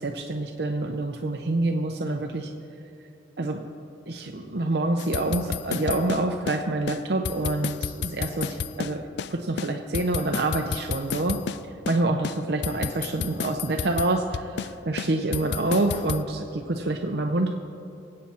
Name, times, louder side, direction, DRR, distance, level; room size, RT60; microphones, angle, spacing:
voice 1, 0.0-2.5 3.4-3.6 4.1-11.4 11.6-17.5, right 2 dB, 60° right, 3 dB, 0.7 m, -27 dB
sound 1, 5.0-6.6 6.9-7.0 7.3-9.3 9.6-11.6 11.9-12.0 12.2-14.7 15.0-16.2, left 7 dB, 60° left, 0.4 m, -31 dB
24.5 x 8.6 x 4.4 m, 2.8 s
head